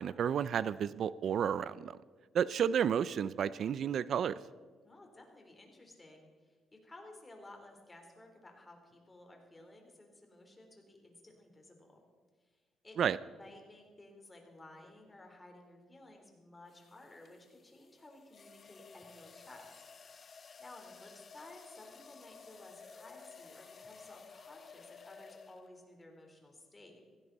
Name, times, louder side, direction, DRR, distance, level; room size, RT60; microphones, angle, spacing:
voice 1, 0.0-1.9 2.3-4.4 13.0-13.2, right 8 dB, 60° right, 17 dB, 0.4 m, -31 dB
voice 2, 4.8-12.1 12.4-12.6 12.8-13.0 13.3-19.7 20.6-27.0, left 2 dB, 20° left, 2 dB, 3.8 m, -55 dB
sound 1, 14.8-15.0 16.7-25.9, left 5 dB, 45° left, 0.8 m, -55 dB
16.5 x 16.0 x 4.1 m, 1.5 s
cardioid pair, 90°, 0 cm